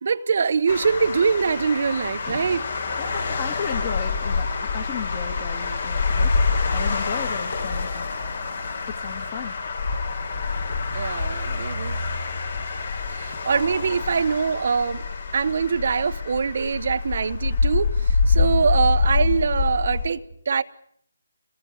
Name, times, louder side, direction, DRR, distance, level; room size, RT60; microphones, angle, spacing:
voice 1, 0.0-2.6 10.9-12.0 13.1-15.0 15.3-20.6, right 5 dB, 50° right, 1.1 m, -23 dB
sound 1, 0.7-20.1, left 4 dB, 60° left, 4.8 m, -26 dB
voice 2, 3.0-4.5 4.7-6.4 6.7-8.1 9.0-9.5, left 7 dB, 30° left, 2.6 m, -34 dB
27.0 x 19.0 x 9.8 m
figure-of-eight pair, 160°, 0 cm